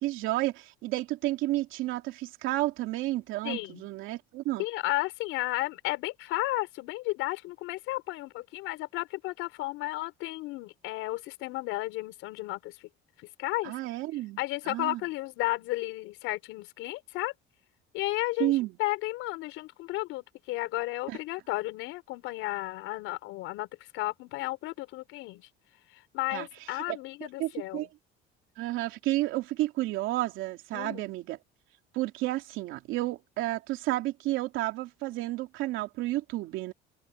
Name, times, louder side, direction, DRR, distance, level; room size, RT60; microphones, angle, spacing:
voice 1, 0.0-4.6 13.6-14.4 14.7-15.0 18.4-18.8 21.1-21.2 26.3-26.5 26.9-27.0 27.4-27.9 28.6-31.4 31.9-36.7, right 17 dB, 75° right, 2.8 m, -31 dB
voice 2, 3.4-3.8 4.6-12.8 13.2-13.7 14.4-17.3 17.9-18.5 18.8-23.7 23.9-25.5 25.9-27.9 30.7-31.1, left 19 dB, 80° left, 5.3 m, -33 dB
open air
cardioid pair, 145°, 21 cm